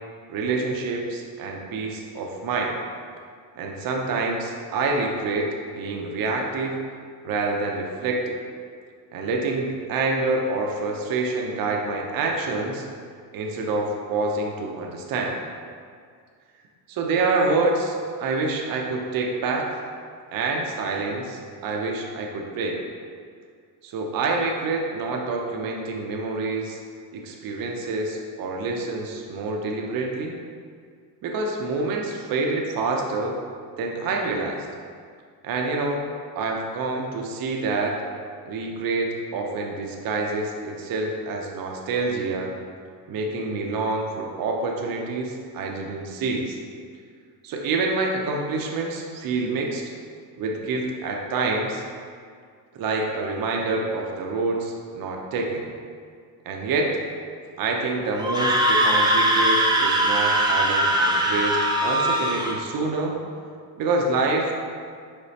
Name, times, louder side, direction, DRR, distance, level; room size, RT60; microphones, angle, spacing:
voice 1, 0.3-2.8 3.6-5.5 5.7-6.8 7.2-8.4 9.1-12.9 13.3-15.4 16.9-19.8 20.3-22.8 23.8-26.8 27.1-30.3 31.2-33.4 33.8-34.7 35.4-36.0 36.3-38.0 38.5-42.5 43.1-46.6 47.4-49.8 50.4-51.8 52.7-55.7 56.5-56.9 57.6-63.2 63.8-64.7, right 3 dB, 55° right, 0 dB, 0.7 m, -27 dB
Screaming, 58.2-62.6, right 1 dB, 10° right, 0.3 m, -21 dB
5.1 x 3.6 x 2.8 m, 2.1 s
cardioid pair, 120°, 41 cm